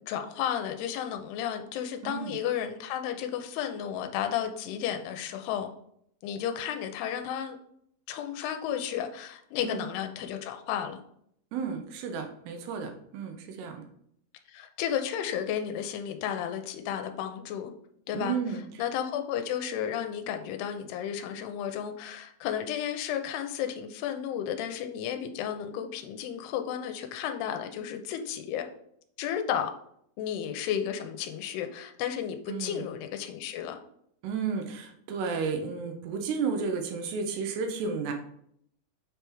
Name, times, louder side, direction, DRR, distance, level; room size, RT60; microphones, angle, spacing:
voice 1, 0.1-5.7 6.2-7.6 8.1-11.0 14.5-17.7 18.1-18.4 18.8-28.7 29.2-29.7 30.2-33.8, left 9 dB, 90° left, 6 dB, 2.7 m, -33 dB
voice 2, 2.0-2.4 9.6-9.9 11.5-13.8 18.1-18.6 32.5-32.8 34.2-38.1, right 5 dB, 90° right, 4 dB, 3.0 m, -32 dB
7.3 x 3.4 x 4.6 m, 0.69 s
omnidirectional pair, 4.6 m